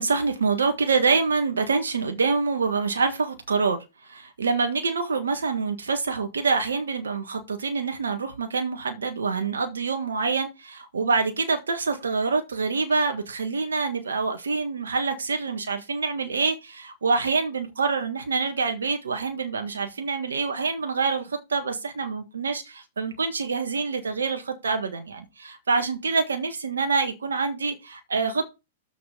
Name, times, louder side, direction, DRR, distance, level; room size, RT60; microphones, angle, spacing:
voice 1, 0.0-28.5, right 4 dB, 85° right, 1.5 m, -26 dB
6.9 x 5.7 x 5.6 m
hypercardioid pair, 115°, 0 cm